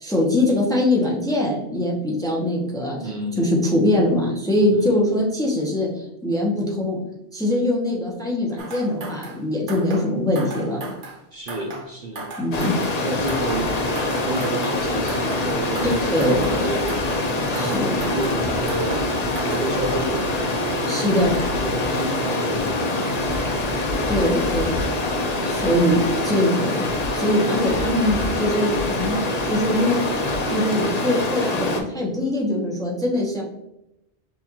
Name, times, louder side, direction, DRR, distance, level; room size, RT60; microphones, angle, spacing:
voice 1, 0.0-3.1 3.4-7.0 7.3-10.8 12.4-12.8 15.8-16.5 17.5-17.9 20.9-21.4 24.1-24.9 25.5-26.8 27.1-29.2 29.4-30.0 30.5-33.4, left 1 dB, 5° left, -3 dB, 0.7 m, -22 dB
voice 2, 3.0-3.5 4.7-5.0 11.3-12.3 13.0-17.0 17.5-20.6 21.6-23.5, right 2 dB, 50° right, -2 dB, 0.7 m, -31 dB
sound 1, 8.6-9.4 9.7-10.1 10.4-11.2 11.5-11.9 12.2-13.0 13.3-13.7 14.0-14.8 15.1-15.5 15.8-16.6 16.9-17.3 17.6-18.4 18.7-19.1 19.4-19.7, right 2 dB, 90° right, 1.3 m, -36 dB
Stream, 12.5-31.8, left 2 dB, 45° left, 0.6 m, -24 dB
6.2 x 2.5 x 2.9 m, 0.85 s
omnidirectional pair, 1.2 m